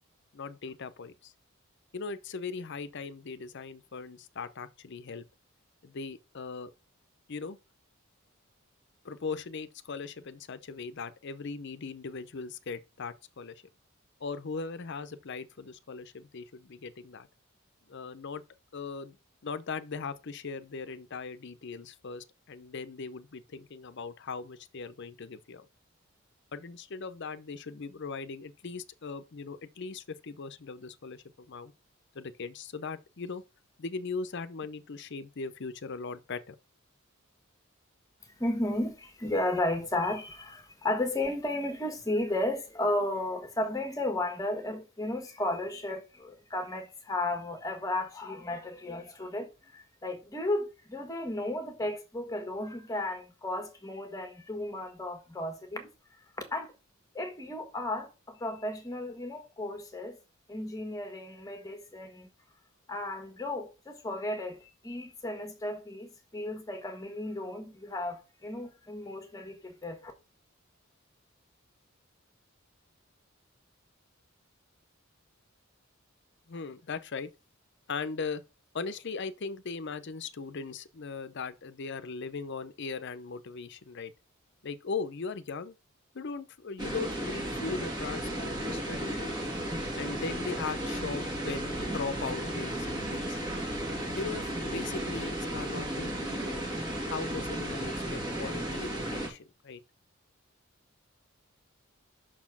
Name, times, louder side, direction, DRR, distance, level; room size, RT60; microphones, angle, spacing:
voice 1, 0.3-1.3 1.9-5.2 5.8-6.7 7.3-7.6 9.0-13.6 14.2-17.3 17.9-18.4 18.7-19.2 19.4-25.7 26.5-31.7 32.1-33.4 33.8-36.6 76.5-77.3 77.9-78.4 78.7-84.1 84.6-85.8 86.1-89.3 89.9-93.4 94.1-96.6 97.1-99.8, left 4 dB, 60° left, 0.7 m, -39 dB
voice 2, 38.4-55.9 56.4-56.7 57.1-60.2 60.5-62.3 62.9-70.1, left 1 dB, 15° left, 1.5 m, -34 dB
sound 1, 86.8-99.3, right 1 dB, 20° right, 2.0 m, -34 dB
6.2 x 4.2 x 5.9 m
head